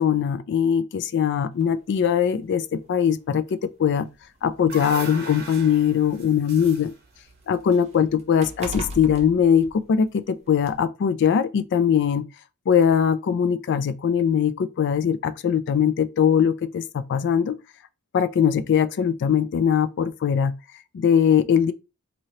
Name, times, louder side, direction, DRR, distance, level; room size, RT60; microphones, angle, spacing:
voice 1, 0.0-3.4 3.8-4.1 4.4-6.9 7.5-12.2 12.7-17.6 18.1-20.5 20.9-21.7, left 8 dB, 55° left, 0.3 m, -21 dB
sound 1, 1.6-1.8 2.8-2.9 3.4-3.5 4.4-6.4 6.8-10.2 10.6-10.8, right 1 dB, 30° right, 0.4 m, -39 dB
sound 2, 4.2-8.5, right 3 dB, 45° right, 0.8 m, -40 dB
2.8 x 2.6 x 3.1 m
head